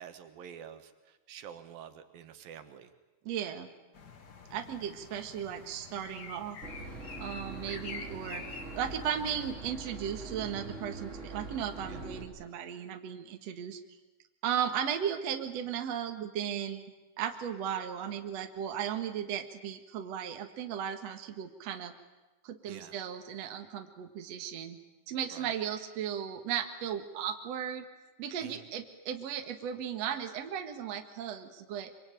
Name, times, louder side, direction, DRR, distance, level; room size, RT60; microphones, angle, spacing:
voice 1, 0.0-2.9 11.9-12.0 22.7-22.9 25.3-25.6 28.4-28.7, right 9 dB, 75° right, 8 dB, 3.2 m, -48 dB
voice 2, 3.2-3.7 4.5-6.6 7.2-13.8 14.4-21.9 22.4-24.8 25.1-27.9 28.2-31.9, right 9 dB, 55° right, 5 dB, 2.5 m, -36 dB
sound 1, 3.9-9.5, left 5 dB, 45° left, 1.4 m, -47 dB
Boat Water vehicle / Engine, 6.6-12.2, right 3 dB, 20° right, 3.9 m, -43 dB
25.0 x 24.5 x 9.1 m, 1.1 s
omnidirectional pair, 4.1 m